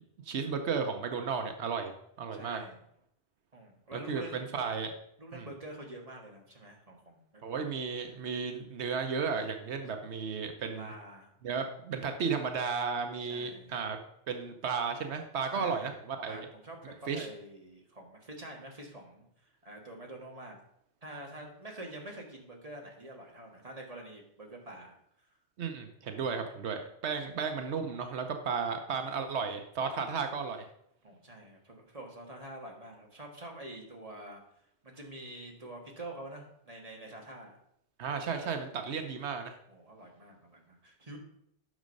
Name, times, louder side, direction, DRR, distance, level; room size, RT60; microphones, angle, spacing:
voice 1, 0.2-1.9 2.2-2.6 3.9-4.9 5.3-5.5 7.4-10.9 11.4-14.0 14.3-16.5 17.1-17.3 25.6-30.7 38.0-39.5, right 5 dB, 85° right, 6 dB, 1.1 m, -34 dB
voice 2, 2.3-2.8 3.5-4.6 5.2-7.8 10.7-11.3 13.2-13.8 15.5-15.9 16.3-20.6 21.0-25.3 27.3-27.4 31.0-34.4 34.8-37.6 39.7-41.2, right 1 dB, 35° right, 0 dB, 1.8 m, -47 dB
9.6 x 6.4 x 5.3 m, 0.74 s
omnidirectional pair, 1.1 m